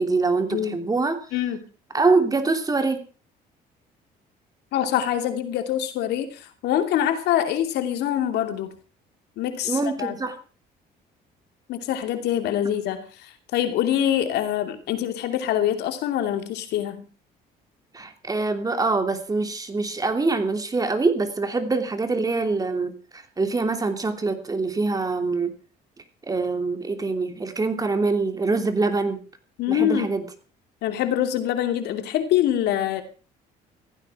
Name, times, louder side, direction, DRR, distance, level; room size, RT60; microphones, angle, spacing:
voice 1, 0.0-1.2 1.9-3.0 9.6-10.3 17.9-25.5 26.3-29.2 29.7-30.3, right 3 dB, 20° right, 8 dB, 2.9 m, -24 dB
voice 2, 4.7-8.7 9.4-10.2 11.7-17.1 29.6-30.1 30.8-33.0, left 11 dB, 80° left, 8 dB, 2.8 m, -25 dB
16.0 x 15.0 x 4.9 m, 0.36 s
cardioid pair, 110°, 17 cm